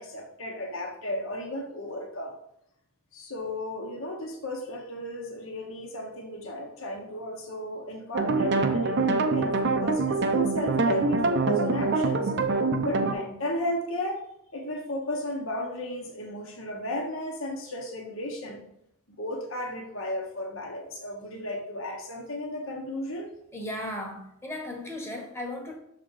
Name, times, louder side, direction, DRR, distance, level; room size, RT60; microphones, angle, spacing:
voice 1, 0.0-2.4 3.1-12.3 12.8-14.2 14.5-18.6 19.1-23.4, left 1 dB, 65° left, 0 dB, 1.2 m, -34 dB
sound 1, 8.1-13.1, right 3 dB, 50° right, 0.6 m, -25 dB
voice 2, 23.5-25.8, left 1 dB, 10° left, 1 dB, 1.3 m, -36 dB
6.7 x 4.0 x 4.8 m, 0.74 s
head